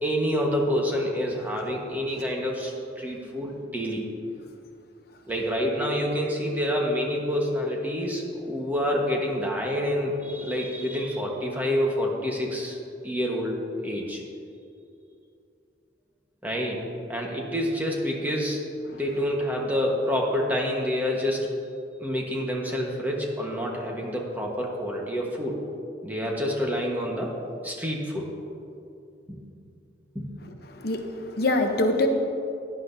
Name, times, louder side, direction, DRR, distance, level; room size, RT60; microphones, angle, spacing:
voice 1, 0.0-4.0 5.3-12.8 13.0-14.2 16.4-18.6 18.9-21.5 22.0-25.6 26.0-27.3 27.6-28.3 29.3-29.4 30.1-30.3, equal, 10° right, -1 dB, 1.3 m, -27 dB
voice 2, 30.7-32.1, left 2 dB, 60° left, 4 dB, 0.8 m, -24 dB
16.0 x 10.0 x 2.7 m, 2.6 s
head